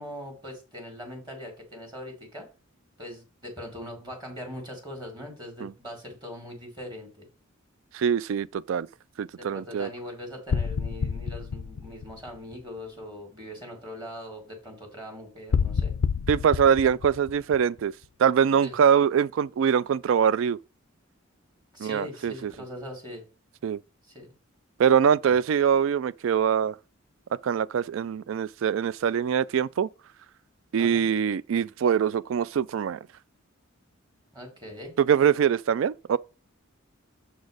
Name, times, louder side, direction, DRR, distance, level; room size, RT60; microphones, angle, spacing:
voice 1, 0.0-2.5 3.0-7.3 9.4-15.9 18.6-18.8 21.7-23.2 24.1-24.3 25.3-25.4 30.8-31.1 34.3-35.0, left 1 dB, 20° right, 1.8 m, -41 dB
voice 2, 7.9-8.9 9.2-9.9 16.3-17.9 18.2-20.6 21.8-22.5 23.6-23.8 24.8-26.7 27.4-29.9 30.7-33.0 35.0-36.2, right 7 dB, 65° right, 0.3 m, -23 dB
sound 1, 10.5-12.8 15.5-18.1, left 6 dB, 85° left, 0.4 m, -29 dB
7.0 x 4.2 x 4.8 m
head